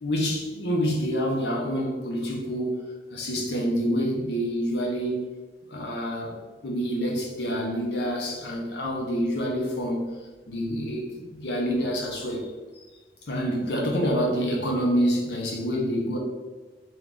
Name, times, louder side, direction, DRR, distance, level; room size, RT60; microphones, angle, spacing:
voice 1, 0.0-2.7 3.1-5.2 5.7-10.2 10.5-12.5 12.7-12.8 13.3-16.2, equal, 75° left, 0 dB, 0.8 m, -27 dB
4.5 x 2.6 x 3.7 m, 1.3 s
head